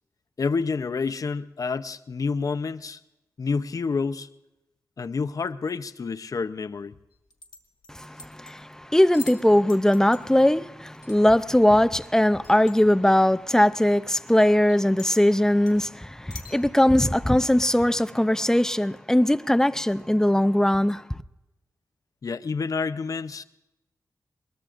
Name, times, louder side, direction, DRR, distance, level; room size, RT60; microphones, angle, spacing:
voice 1, 0.4-3.0 3.4-4.3 5.0-6.9 22.2-23.4, left 4 dB, 55° left, 0.6 m, -28 dB
sound 1, 7.1-8.6 9.0-9.4 9.7-10.3 10.9-11.2 11.5-11.6 12.0-12.1 12.4-12.7 13.5-13.6 14.2-14.3 14.6-15.2 15.5-15.8 16.3-16.6, left 4 dB, 85° left, 2.0 m, -44 dB
voice 2, 7.9-21.2, left 1 dB, 10° left, 0.5 m, -20 dB
21.5 x 20.5 x 2.5 m
cardioid pair, 70°, 7 cm